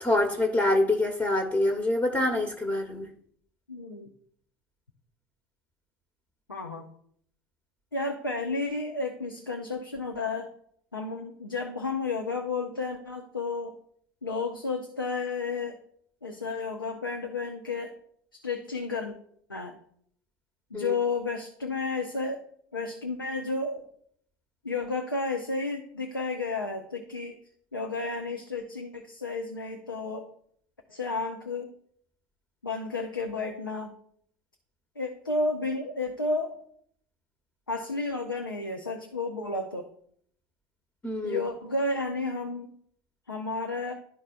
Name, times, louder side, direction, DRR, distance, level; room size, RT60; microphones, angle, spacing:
voice 1, 0.0-3.1 20.7-20.9 41.0-41.4, left 1 dB, 15° left, 4 dB, 1.1 m, -25 dB
voice 2, 3.7-4.1 6.5-6.9 7.9-10.5 10.9-13.7 14.2-15.8 16.2-17.9 18.4-19.1 19.5-19.8 20.7-22.4 22.7-23.9 24.6-27.4 27.7-30.2 30.9-31.7 32.6-33.9 35.0-36.6 37.7-39.9 41.2-42.7 43.3-43.9, left 3 dB, 85° left, 3 dB, 0.7 m, -32 dB
12.0 x 4.2 x 2.4 m, 0.65 s
figure-of-eight pair, 75°, 11 cm